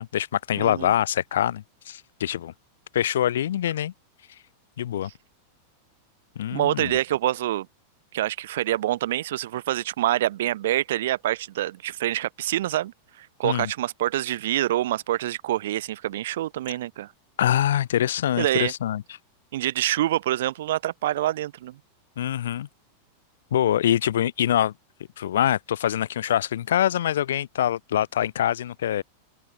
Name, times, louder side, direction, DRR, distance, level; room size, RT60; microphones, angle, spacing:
voice 1, 0.0-2.5 2.9-3.9 4.8-5.1 6.3-6.9 13.4-13.7 17.4-19.0 22.2-22.7 23.5-24.7 25.2-29.0, left 11 dB, 60° left, 3.4 m, -24 dB
voice 2, 0.6-0.9 6.5-7.7 8.1-12.9 13.2-17.1 18.4-18.7 19.5-21.7, right 14 dB, 55° right, 0.7 m, -26 dB
figure-of-eight pair, 90°, 0 cm